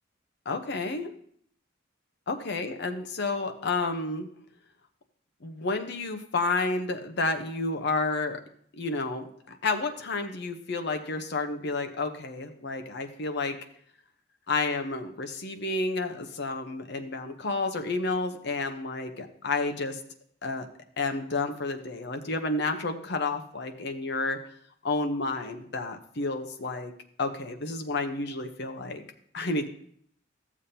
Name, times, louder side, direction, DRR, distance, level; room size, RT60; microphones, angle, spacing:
voice 1, 0.5-1.1 2.3-4.3 5.4-8.4 8.8-13.6 14.5-20.0 20.4-20.7 21.0-24.4 24.8-26.9 27.2-29.0 29.3-29.7, left 3 dB, 65° left, 6 dB, 0.9 m, -30 dB
14.0 x 7.2 x 2.8 m, 0.63 s
head